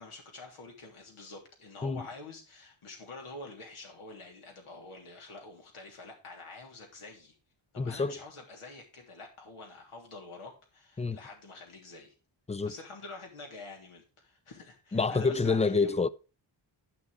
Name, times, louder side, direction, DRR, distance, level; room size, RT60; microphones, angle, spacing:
voice 1, 0.0-7.3 7.7-12.1 12.6-16.0, left 3 dB, 85° left, 3.2 m, -47 dB
voice 2, 7.8-8.2 11.0-11.2 12.5-12.7 14.9-16.1, left 4 dB, 15° left, 0.4 m, -27 dB
10.0 x 6.1 x 4.9 m
cardioid pair, 80°, 49 cm